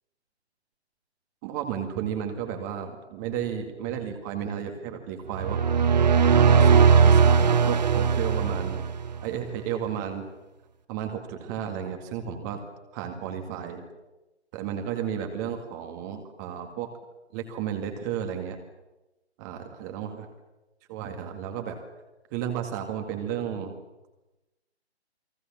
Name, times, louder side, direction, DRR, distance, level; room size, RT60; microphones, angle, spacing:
voice 1, 1.4-5.6 6.4-8.8 9.2-10.2 10.9-12.6 12.9-13.8 14.5-16.9 17.3-18.6 19.4-20.3 20.9-21.8 22.3-23.7, right 9 dB, 15° right, 4 dB, 2.1 m, -33 dB
sound 1, 5.3-9.2, right 6 dB, 40° right, 1.5 m, -19 dB
29.0 x 21.5 x 7.5 m, 1.0 s
figure-of-eight pair, 145°, 34 cm